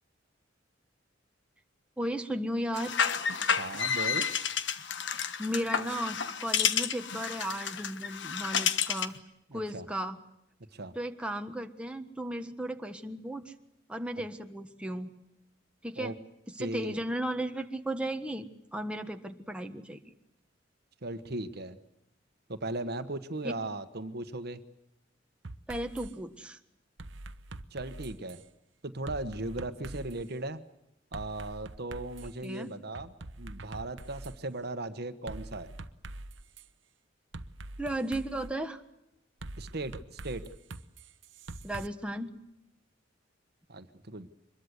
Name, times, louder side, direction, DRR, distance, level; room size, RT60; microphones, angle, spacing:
voice 1, 2.0-2.9 5.4-9.1 9.5-10.2 10.9-13.5 13.9-15.1 15.8-16.2 16.6-18.5 18.7-20.0 25.7-26.6 32.4-32.7 37.8-38.8 41.6-42.3, right 1 dB, 5° right, 5 dB, 1.4 m, -35 dB
sound 1, 2.7-9.2, left 7 dB, 70° left, 1.4 m, -30 dB
voice 2, 3.6-4.3 9.5-9.9 10.7-10.9 16.0-16.1 16.6-17.0 21.0-21.8 22.5-24.6 27.7-28.4 28.8-30.6 31.1-35.7 39.6-40.4 43.7-44.3, right 2 dB, 60° right, 11 dB, 1.4 m, -37 dB
sound 2, 25.4-26.1 27.0-28.4 29.1-30.2 31.1-32.4 32.9-34.4 35.3-36.7 37.3-38.5 39.4-41.9, right 2 dB, 75° right, 1.1 m, -44 dB
24.5 x 22.0 x 8.2 m, 0.83 s
head